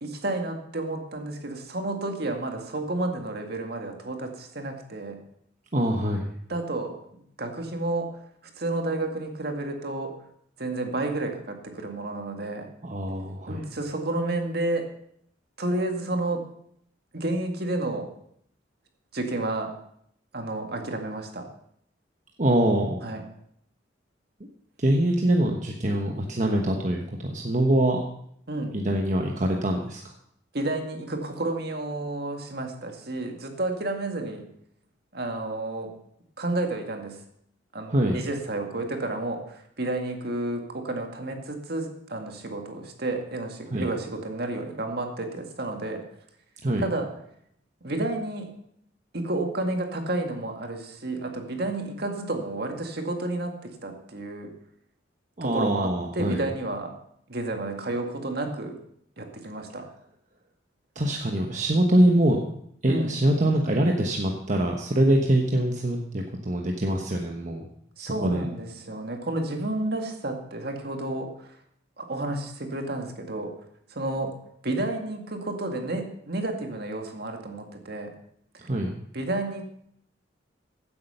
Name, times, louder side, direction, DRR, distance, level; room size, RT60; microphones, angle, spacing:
voice 1, 0.0-5.2 6.5-7.0 7.4-8.1 8.6-10.1 10.6-12.7 13.5-14.9 15.6-16.4 17.1-18.1 19.1-19.7 20.3-21.5 23.0-23.2 28.5-28.8 30.5-34.5 35.1-35.9 36.4-37.2 37.7-46.0 46.8-47.1 47.8-48.5 49.1-54.5 55.4-56.9 57.3-58.8 59.2-59.9 62.9-63.2 68.0-71.3 72.0-73.6 73.9-74.3 74.6-78.1 79.1-79.6, right 2 dB, 60° right, 4 dB, 2.0 m, -31 dB
voice 2, 5.7-6.3 12.8-13.6 22.4-23.0 24.8-28.0 28.7-30.0 37.9-38.2 43.7-43.9 46.6-46.8 55.4-56.5 60.9-62.4 62.8-67.7 68.0-68.5 78.6-79.0, right 1 dB, 40° right, 1 dB, 1.2 m, -24 dB
15.5 x 8.6 x 5.6 m, 0.68 s
head